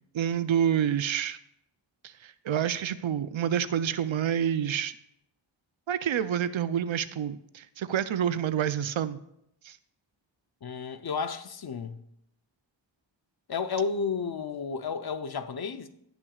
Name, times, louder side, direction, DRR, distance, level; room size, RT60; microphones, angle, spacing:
voice 1, 0.1-1.4 2.0-4.9 5.9-9.2 9.6-9.8, right 9 dB, 85° right, 0.5 m, -28 dB
voice 2, 10.6-12.0 13.5-15.9, left 5 dB, 55° left, 0.6 m, -32 dB
17.0 x 5.9 x 2.4 m
wide cardioid pair, 75°, 46 cm